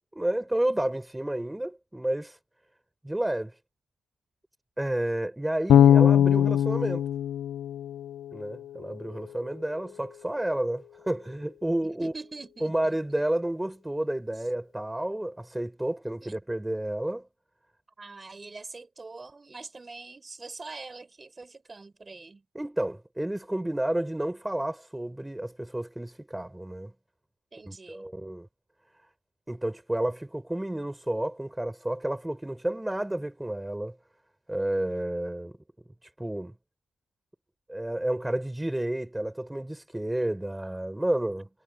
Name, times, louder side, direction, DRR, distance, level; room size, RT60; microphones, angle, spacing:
voice 1, 0.1-2.4 3.0-3.5 4.8-7.0 8.3-12.1 12.6-17.3 22.5-26.9 27.7-28.5 29.5-34.0 34.5-35.6 36.2-36.5 37.7-41.5, right 1 dB, 10° right, 4.5 m, -30 dB
Bass guitar, 5.7-8.7, left 10 dB, 70° left, 0.5 m, -21 dB
voice 2, 11.8-12.7 16.2-16.3 18.0-22.4 27.5-28.1, right 3 dB, 25° right, 6.1 m, -44 dB
cardioid pair, 90°, 0 cm